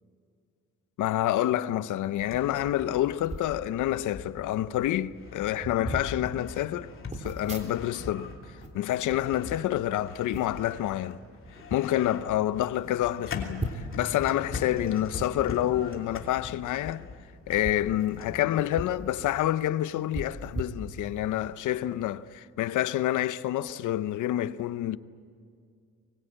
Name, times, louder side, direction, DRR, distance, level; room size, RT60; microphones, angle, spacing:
voice 1, 1.0-6.9 7.2-8.3 8.7-11.2 11.7-17.0 17.5-25.0, left 13 dB, 80° left, 0.8 m, -28 dB
sound 1, 2.2-18.5, left 4 dB, 45° left, 3.1 m, -43 dB
sound 2, 3.3-3.6 4.4-4.5 4.7-5.0 5.6-6.1 7.1-8.1 8.4-9.8 10.3-10.7 11.4-11.8 12.4-12.5 12.7-12.8 13.6-14.1 15.1-15.3 16.7-16.9 17.5-19.0 19.3-19.4 20.1-21.3 21.8-22.0, right 1 dB, 25° right, 3.4 m, -38 dB
23.5 x 22.5 x 8.8 m
cardioid pair, 90°, 30 cm